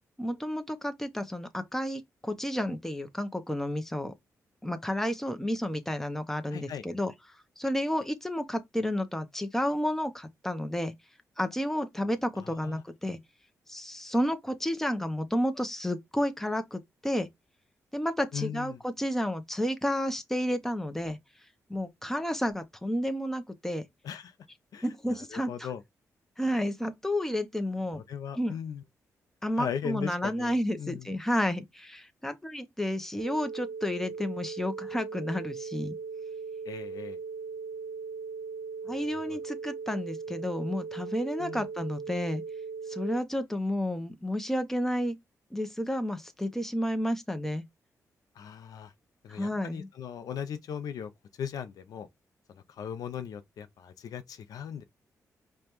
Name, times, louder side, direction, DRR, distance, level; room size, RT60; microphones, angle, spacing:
voice 1, 0.2-4.1 4.6-7.1 7.6-10.9 11.4-13.2 13.7-17.3 17.9-21.2 21.7-23.8 24.8-25.7 26.4-28.0 28.3-28.6 29.4-35.9 38.9-42.4 42.9-45.2 45.5-47.6 49.3-49.9, equal, 5° left, 0.7 m, -31 dB
voice 2, 6.5-6.8 12.4-12.8 18.3-18.8 24.0-24.3 24.7-24.9 25.3-25.8 27.9-28.8 29.6-31.1 36.7-37.2 39.1-39.4 41.4-41.7 48.4-48.9 49.2-51.1 51.4-52.1 52.7-54.8, left 8 dB, 75° left, 0.5 m, -38 dB
sound 1, 33.2-43.2, right 5 dB, 90° right, 0.6 m, -39 dB
5.0 x 2.2 x 2.9 m
cardioid pair, 70°, 6 cm